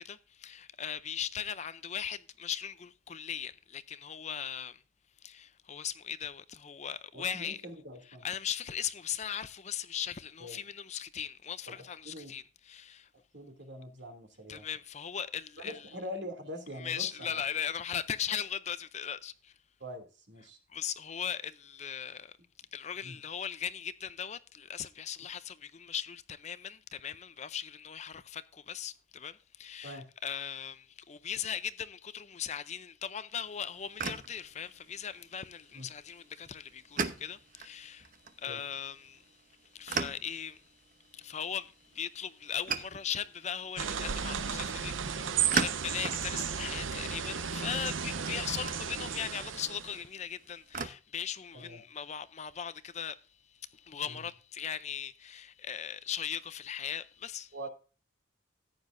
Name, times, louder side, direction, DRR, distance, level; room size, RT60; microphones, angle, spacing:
voice 1, 0.0-4.8 5.2-7.6 8.1-13.1 14.5-15.9 16.8-19.5 20.7-22.4 22.7-38.1 38.4-39.2 39.7-40.6 41.1-53.2 53.7-57.5, left 8 dB, 35° left, 0.5 m, -39 dB
voice 2, 7.1-8.3 10.4-10.6 11.7-12.4 13.3-14.6 15.6-17.4 19.8-20.6 23.0-23.2 29.8-30.1 35.7-35.9 38.5-38.6 45.9-46.1 51.5-51.8 54.1-54.3 57.5-57.7, equal, 60° right, 2.6 m, -44 dB
sound 1, 33.4-50.9, right 5 dB, 40° right, 0.9 m, -41 dB
sound 2, 43.8-50.0, right 7 dB, 75° right, 0.8 m, -34 dB
14.5 x 9.4 x 2.6 m
head